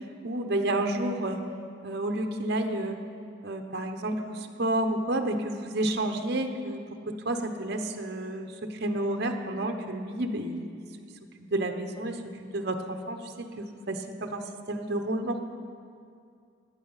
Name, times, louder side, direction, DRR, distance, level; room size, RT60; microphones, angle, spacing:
voice 1, 0.2-1.4 1.8-3.0 3.4-10.8 11.4-15.4, right 1 dB, 55° right, 5 dB, 1.0 m, -30 dB
15.5 x 9.9 x 5.6 m, 2.3 s
head